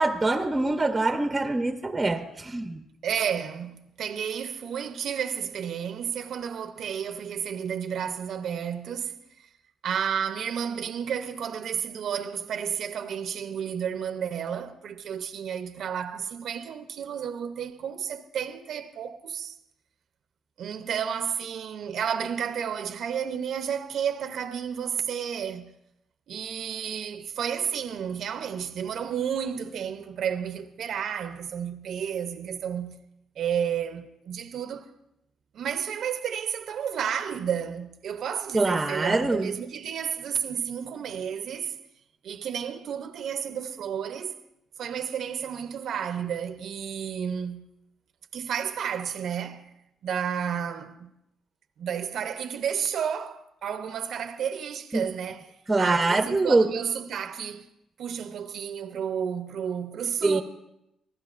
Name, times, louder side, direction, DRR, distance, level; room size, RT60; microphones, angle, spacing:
voice 1, 0.0-2.8 38.5-39.5 54.9-55.1 55.7-56.7 60.2-60.4, right 2 dB, 20° right, 0.7 m, -24 dB
voice 2, 3.0-9.5 9.8-19.6 20.6-25.7 26.3-33.0 33.4-34.9 35.5-41.8 42.2-44.3 44.8-47.7 48.3-49.7 50.0-51.1 51.8-57.7 58.0-60.4, right 8 dB, 70° right, 0.7 m, -31 dB
24.5 x 15.0 x 2.5 m
cardioid pair, 90°, 0 cm